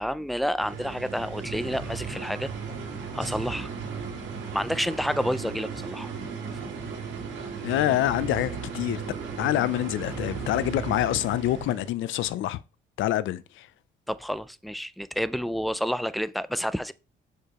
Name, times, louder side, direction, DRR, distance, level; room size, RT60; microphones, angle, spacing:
voice 1, 0.0-2.5 3.1-3.7 4.5-6.1 14.1-16.9, equal, ahead, 0.4 m, -29 dB
sound 1, 0.6-11.9, right 5 dB, 70° right, 2.5 m, -36 dB
voice 2, 7.6-9.0 9.4-12.6 13.0-13.7, left 13 dB, 80° left, 0.5 m, -26 dB
6.5 x 4.9 x 3.0 m
cardioid pair, 90°, 20 cm